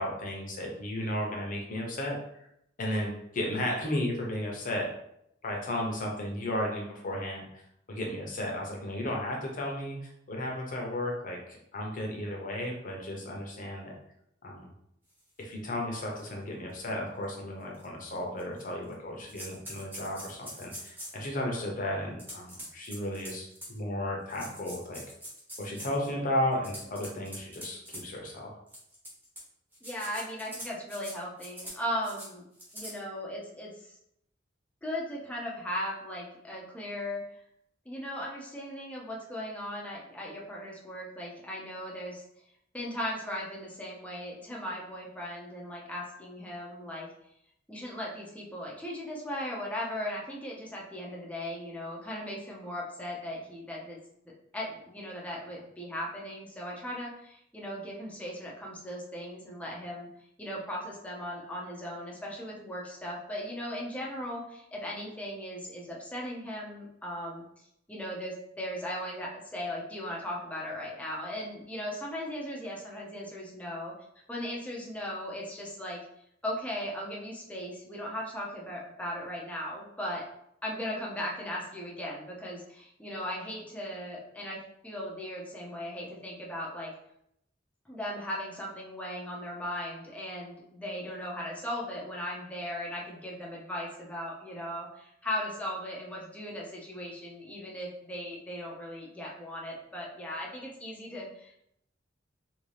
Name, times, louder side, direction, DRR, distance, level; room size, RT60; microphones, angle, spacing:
voice 1, 0.0-2.2 2.8-4.9 5.4-7.6 7.9-13.9 14.4-14.7 15.4-25.0 25.6-28.5, left 1 dB, 45° left, 0 dB, 0.8 m, -34 dB
sound 1, 15.4-15.5 16.2-16.3 16.7-16.8 17.7-17.8 18.4-18.9 19.3-21.2 22.2-23.8 24.3-26.1 26.5-28.0 28.7-29.4 29.7-31.1 31.4-31.8 32.0-32.3 32.6-32.9, equal, 10° right, 1.0 m, -43 dB
voice 2, 29.8-32.4 32.7-33.7 34.8-37.2 37.9-42.2 42.7-47.1 47.7-54.0 54.5-60.1 60.4-73.9 74.3-76.0 76.4-80.3 80.6-86.9 87.9-101.6, equal, 5° left, -4 dB, 0.6 m, -38 dB
2.8 x 2.7 x 3.2 m, 0.76 s
head